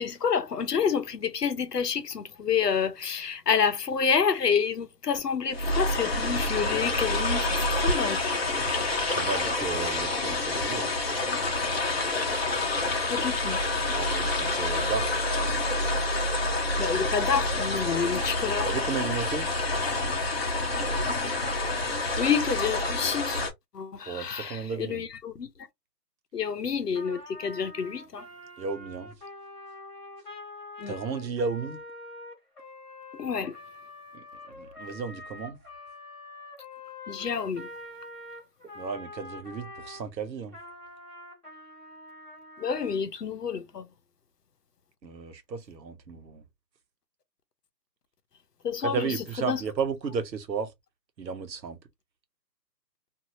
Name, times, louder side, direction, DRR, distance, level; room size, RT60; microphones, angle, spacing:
voice 1, 0.0-8.4 13.1-13.6 16.8-18.7 22.2-23.4 23.7-25.5 26.3-28.3 30.8-30.9 33.2-33.5 37.1-37.7 42.6-43.9 48.6-49.6, left 6 dB, 70° left, 0.8 m, -28 dB
sound 1, 5.1-5.2 5.5-23.5, left 2 dB, 35° left, 0.8 m, -28 dB
voice 2, 9.1-10.9 13.9-15.1 15.4-15.5 18.7-19.5 24.1-25.0 28.6-29.1 30.9-31.8 34.1-34.2 34.6-35.6 38.7-40.6 45.0-46.4 48.8-50.7 51.2-51.8, right 5 dB, 80° right, 1.0 m, -33 dB
Trumpet, 26.9-40.0 40.5-43.0, left 2 dB, ahead, 1.3 m, -45 dB
2.8 x 2.7 x 2.6 m
hypercardioid pair, 175°, 50 cm